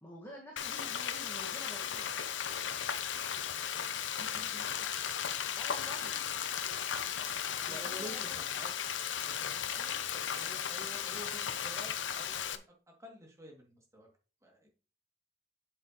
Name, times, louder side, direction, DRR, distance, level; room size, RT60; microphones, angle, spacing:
voice 1, 0.0-2.1 5.5-6.3 7.7-8.4 9.7-10.0, equal, 15° left, -2 dB, 1.6 m, -49 dB
Frying (food), 0.6-12.6, left 8 dB, 85° left, 0.7 m, -36 dB
voice 2, 4.2-4.6 7.7-8.7 9.2-9.6 10.1-12.6 13.0-14.1 14.4-14.7, equal, 15° right, 0 dB, 2.5 m, -49 dB
8.0 x 7.7 x 3.0 m, 0.35 s
head